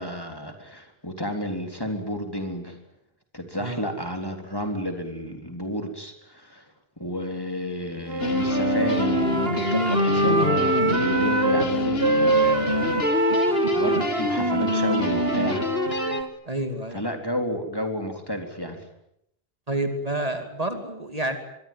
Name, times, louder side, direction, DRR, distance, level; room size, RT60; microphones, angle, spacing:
voice 1, 0.0-2.8 3.3-13.1 13.4-15.7 16.9-18.9, equal, 20° left, 5 dB, 3.8 m, -31 dB
Wind instrument woodwind instrument, 8.1-11.7 12.0-16.3, right 3 dB, 70° right, 2.2 m, -25 dB
sound 1, 8.2-16.2, left 3 dB, 75° left, 2.1 m, -25 dB
voice 2, 16.5-17.0 19.7-21.4, right 1 dB, 40° right, 7 dB, 2.8 m, -29 dB
25.0 x 23.0 x 9.4 m, 0.76 s
omnidirectional pair, 1.0 m